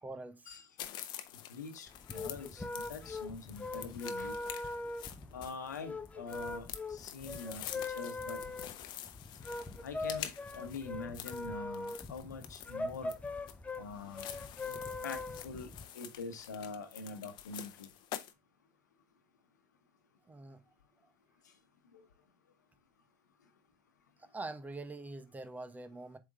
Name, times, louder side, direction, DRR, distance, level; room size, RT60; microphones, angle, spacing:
voice 1, 0.0-0.5 20.3-20.6 21.0-21.1 24.2-26.2, right 2 dB, 15° right, 1.0 m, -44 dB
sound 1, 0.8-18.3, left 12 dB, 55° left, 0.8 m, -47 dB
voice 2, 1.5-1.9 2.1-4.3 5.3-7.6 7.9-8.4 9.8-13.1 13.8-14.3 14.6-14.8 15.0-15.7 15.9-17.9, left 4 dB, 85° left, 1.2 m, -44 dB
sound 2, 1.9-15.8, left 2 dB, 15° left, 0.8 m, -41 dB
7.5 x 3.8 x 3.6 m
hypercardioid pair, 70°, 9 cm